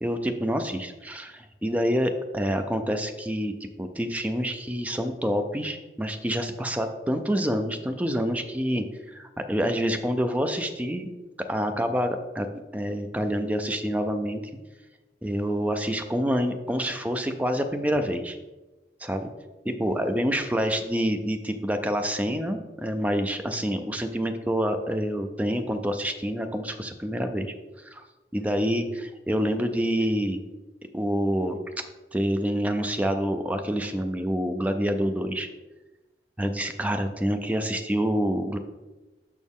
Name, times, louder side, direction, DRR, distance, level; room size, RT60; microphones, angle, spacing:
voice 1, 0.0-3.5 3.8-8.9 9.1-11.1 11.5-12.5 12.7-14.4 15.2-18.4 19.0-19.3 19.7-28.1 28.3-30.4 30.9-31.6 32.1-35.5 36.4-38.6, equal, 10° right, 7 dB, 0.4 m, -27 dB
6.3 x 5.8 x 3.6 m, 1.1 s
head